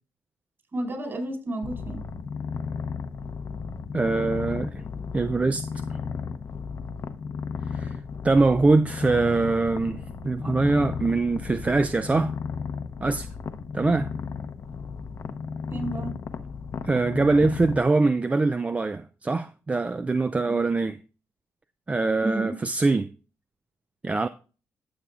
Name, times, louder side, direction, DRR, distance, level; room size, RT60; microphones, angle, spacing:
voice 1, 0.7-2.0 15.7-16.1 20.5-20.6 22.2-22.5, right 2 dB, 45° right, 4.8 m, -31 dB
Purr, 1.6-17.8, left 5 dB, 55° left, 0.7 m, -34 dB
voice 2, 3.9-4.8 5.1-5.8 7.7-8.0 8.2-12.3 13.0-13.3 13.7-14.1 16.8-21.0 21.9-23.1 24.0-24.3, right 3 dB, 25° right, 0.4 m, -23 dB
15.0 x 6.8 x 2.4 m
cardioid pair, 70°, 6 cm